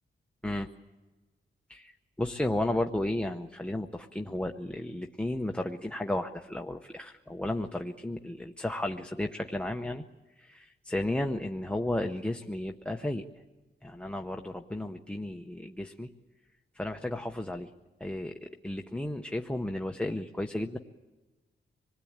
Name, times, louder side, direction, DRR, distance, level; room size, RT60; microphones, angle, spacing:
voice 1, 1.7-10.0 10.4-13.2 13.8-16.1 16.7-17.7 18.0-20.8, left 1 dB, 5° left, 4 dB, 0.7 m, -33 dB
26.5 x 20.0 x 8.7 m, 1.2 s
wide cardioid pair, 160°, 20 cm